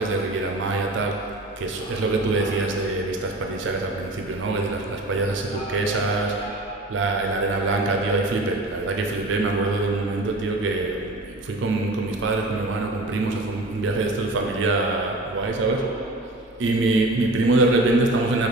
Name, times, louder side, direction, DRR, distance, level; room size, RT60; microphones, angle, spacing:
voice 1, 0.0-6.3 6.9-15.9 16.6-18.5, right 2 dB, 65° right, 2 dB, 0.4 m, -24 dB
voice 2, 1.5-2.6 4.8-5.2 5.5-6.9 7.4-7.9 15.2-16.5, equal, 35° left, -11 dB, 0.6 m, -39 dB
3.3 x 2.7 x 4.0 m, 2.6 s
head